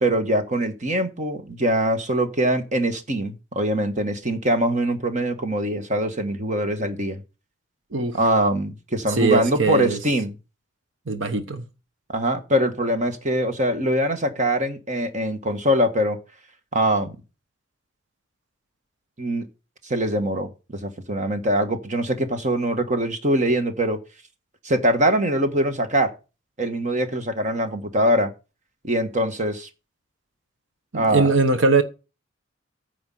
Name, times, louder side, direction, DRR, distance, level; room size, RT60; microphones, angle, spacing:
voice 1, 0.0-7.2 8.1-10.3 12.1-16.2 16.7-17.2 19.2-19.5 19.8-20.5 20.8-24.0 24.6-26.1 26.6-28.3 28.8-29.7 30.9-31.3, right 1 dB, 40° right, 1.6 m, -23 dB
voice 2, 9.1-10.0 11.1-11.6 30.9-31.8, right 3 dB, 80° right, 1.1 m, -21 dB
9.7 x 5.0 x 7.7 m
head